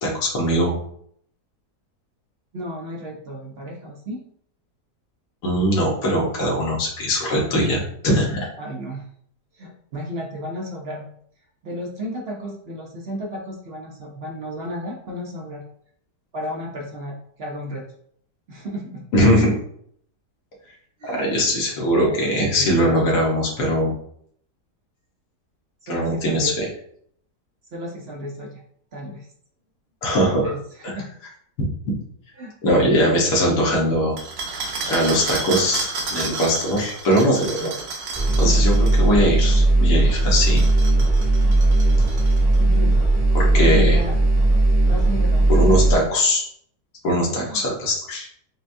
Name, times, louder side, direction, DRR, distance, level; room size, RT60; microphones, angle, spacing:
voice 1, 0.0-0.8 5.4-8.4 19.1-19.6 21.0-23.9 25.9-26.7 30.0-30.5 30.8-30.9 31.6-31.9 32.6-34.1 34.9-37.7 38.4-40.6 43.3-44.0 45.5-46.5 47.0-48.3, equal, 80° left, -3 dB, 1.6 m, -21 dB
voice 2, 2.5-4.2 8.6-9.0 9.5-11.1 11.6-15.6 16.3-17.8 18.5-19.0 21.0-21.2 22.5-23.1 25.8-26.5 27.7-28.6 28.9-29.3 30.4-31.1 32.4-32.6 37.6-37.7 42.6-43.0 43.5-44.2 44.8-45.5 47.4-47.7, equal, 55° right, -1 dB, 0.7 m, -33 dB
sound 1, 34.2-39.1 40.1-42.6, right 4 dB, 70° right, 1.2 m, -31 dB
sound 2, 38.1-45.9, right 2 dB, 25° right, 1.2 m, -17 dB
5.8 x 2.2 x 2.6 m, 0.65 s
omnidirectional pair, 1.7 m